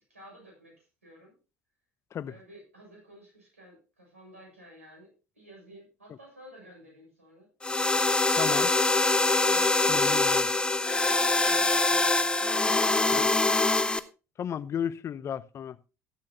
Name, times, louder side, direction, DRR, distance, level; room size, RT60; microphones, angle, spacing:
voice 1, 0.1-1.3 2.3-7.5 9.4-9.8 11.4-13.5, equal, 90° right, 7.1 m, -52 dB
sound 1, 7.6-14.0, left 2 dB, 15° left, 0.9 m, -24 dB
voice 2, 8.4-8.7 9.9-10.5 13.1-13.3 14.4-15.8, left 8 dB, 40° left, 0.7 m, -34 dB
14.0 x 12.0 x 2.8 m
figure-of-eight pair, 60°, 7 cm